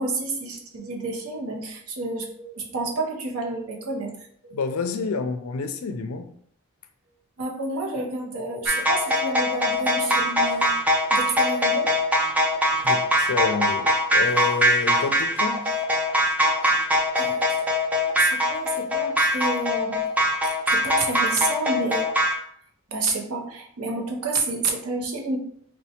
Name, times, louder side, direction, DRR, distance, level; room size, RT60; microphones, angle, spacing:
voice 1, 0.0-4.1 4.5-4.6 7.4-10.7 11.1-11.9 17.2-17.4 18.2-20.0 20.7-22.1 22.9-25.4, right 3 dB, 75° right, 1 dB, 0.7 m, -29 dB
voice 2, 4.5-6.3 12.8-15.7, left 4 dB, 70° left, 8 dB, 0.4 m, -28 dB
sound 1, 8.7-22.3, equal, 5° right, 0.3 m, -22 dB
4.1 x 2.2 x 2.8 m, 0.66 s
head